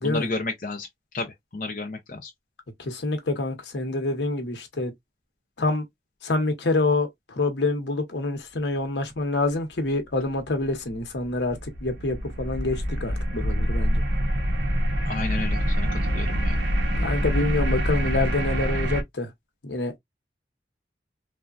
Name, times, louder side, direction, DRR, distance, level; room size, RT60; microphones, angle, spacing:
voice 1, 0.0-0.9 1.1-2.3 15.1-16.6, left 3 dB, 45° left, 0.5 m, -32 dB
voice 2, 2.8-4.9 5.6-5.9 6.2-14.0 17.0-19.3 19.6-20.0, left 2 dB, 80° left, 0.9 m, -26 dB
sound 1, 10.6-19.0, equal, 80° right, 0.8 m, -25 dB
3.3 x 2.1 x 2.4 m
head